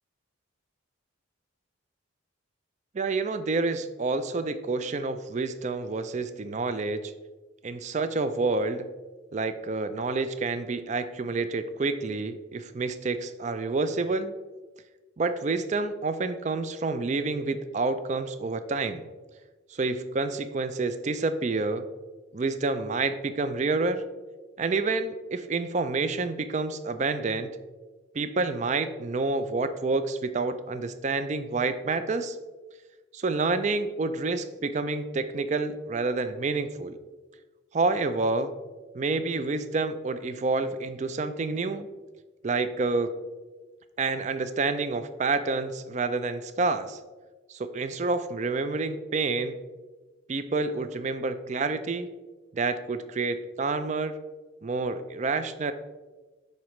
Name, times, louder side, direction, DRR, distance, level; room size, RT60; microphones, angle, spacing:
voice 1, 2.9-7.1 7.6-8.9 9.3-14.3 15.2-19.1 19.7-21.9 22.3-24.0 24.6-27.6 28.1-32.4 33.1-37.0 37.7-38.5 38.9-41.9 42.4-43.1 44.0-47.0 47.5-49.6 50.3-52.1 52.5-54.2 54.6-55.7, right 3 dB, 35° right, 11 dB, 0.4 m, -28 dB
10.5 x 4.2 x 3.1 m, 1.3 s
head